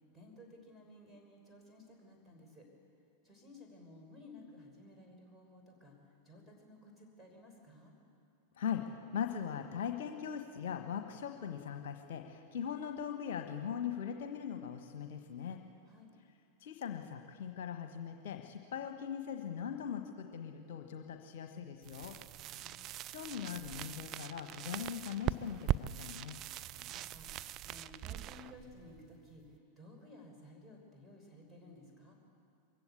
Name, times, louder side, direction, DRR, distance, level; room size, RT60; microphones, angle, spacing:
voice 1, 0.1-2.7 3.2-5.9 6.2-7.9 15.9-16.1 22.4-22.9 26.7-29.4 29.8-32.2, left 1 dB, 5° right, -1 dB, 5.6 m, -56 dB
voice 2, 8.6-15.6 16.6-22.2 23.1-26.4, left 8 dB, 55° left, 6 dB, 1.2 m, -40 dB
sound 1, 21.8-29.6, right 13 dB, 35° right, 0.5 m, -41 dB
23.0 x 15.5 x 8.4 m, 2.5 s
figure-of-eight pair, 90°, 0 cm